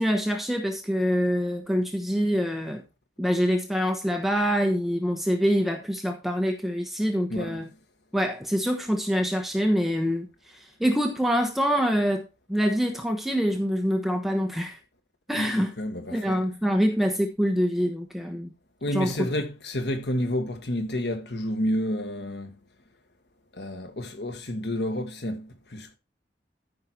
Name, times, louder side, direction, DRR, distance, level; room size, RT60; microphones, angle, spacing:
voice 1, 0.0-2.8 3.2-7.7 8.1-14.8 15.3-15.7 16.1-18.5 18.9-19.1, equal, ahead, 1.1 m, -25 dB
voice 2, 7.3-7.6 15.3-16.4 18.8-22.6 23.5-26.0, left 1 dB, 70° left, 1.6 m, -30 dB
13.5 x 5.7 x 4.5 m
head